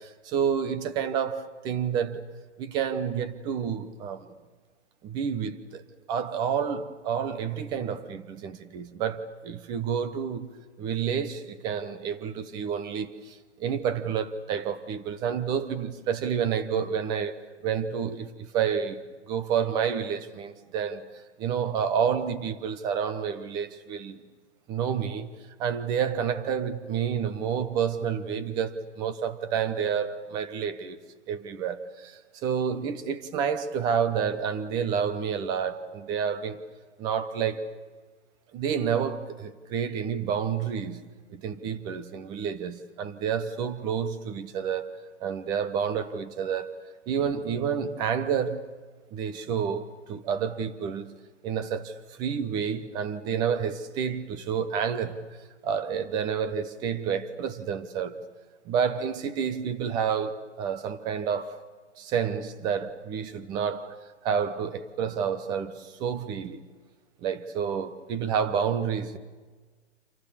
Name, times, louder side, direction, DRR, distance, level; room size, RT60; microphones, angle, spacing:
voice 1, 0.0-2.2 2.6-4.3 5.0-5.8 6.1-10.5 10.8-17.4 17.6-19.0 19.3-21.1 21.4-24.2 24.7-25.3 25.6-31.0 31.3-36.6 37.0-37.7 38.5-41.0 41.3-44.9 45.2-46.7 47.1-48.7 49.1-51.1 51.4-55.2 55.6-58.2 58.7-61.6 62.0-66.6 67.2-69.2, right 7 dB, 10° right, 0.8 m, -29 dB
28.5 x 27.5 x 7.2 m
hypercardioid pair, 160°, 36 cm